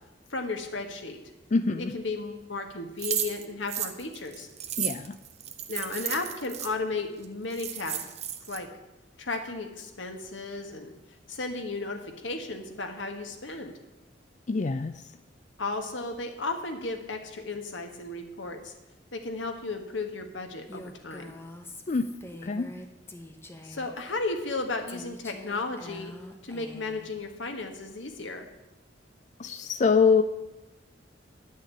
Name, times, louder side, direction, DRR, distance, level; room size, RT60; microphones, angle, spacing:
voice 1, 0.3-1.2 1.8-4.5 5.7-8.0 8.5-8.7 9.2-10.9 11.3-13.8 15.6-18.7 19.1-21.3 23.6-26.1 26.4-28.5, left 3 dB, 90° left, 5 dB, 1.6 m, -34 dB
voice 2, 1.5-1.9 4.8-5.2 14.5-14.9 21.9-22.1 22.4-22.7 29.4-30.2, left 5 dB, 40° left, 10 dB, 0.4 m, -24 dB
sound 1, 3.0-6.7 7.2-7.3 7.5-8.6, right 10 dB, 35° right, 0.7 m, -33 dB
Female speech woman speaking, 20.7-24.0 24.9-27.1, left 1 dB, 15° left, 0.9 m, -45 dB
10.0 x 6.3 x 8.8 m, 0.99 s
head